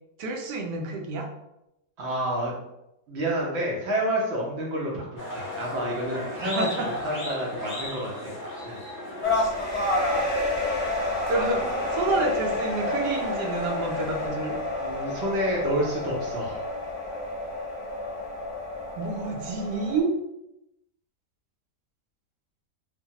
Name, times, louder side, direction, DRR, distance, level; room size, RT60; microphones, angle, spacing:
voice 1, 0.2-1.3 6.4-6.9 10.1-10.3 11.3-11.6 11.9-14.6 19.0-20.1, right 3 dB, 85° right, 2 dB, 1.2 m, -29 dB
voice 2, 2.0-2.5 3.1-8.4 8.6-8.8 11.6-11.7 14.8-16.6, right 1 dB, 60° right, -3 dB, 0.7 m, -29 dB
sound 1, 5.2-14.3, left 1 dB, 15° left, 0.8 m, -37 dB
sound 2, 9.2-20.0, left 2 dB, 50° left, 0.4 m, -29 dB
3.0 x 2.2 x 2.7 m, 0.86 s
omnidirectional pair, 1.8 m